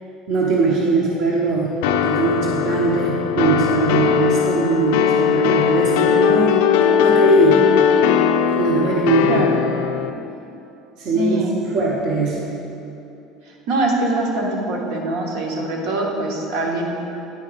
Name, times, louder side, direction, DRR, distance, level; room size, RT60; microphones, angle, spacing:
voice 1, 0.3-1.8 2.0-6.6 7.0-7.6 8.6-9.5 11.0-12.5, right 3 dB, 40° right, -4 dB, 0.8 m, -20 dB
sound 1, 1.8-10.1, left 8 dB, 85° left, 0.4 m, -18 dB
voice 2, 11.1-11.5 13.7-16.9, right 2 dB, 65° right, -1 dB, 1.1 m, -23 dB
9.5 x 4.1 x 4.9 m, 2.8 s
cardioid pair, 175°, 0 cm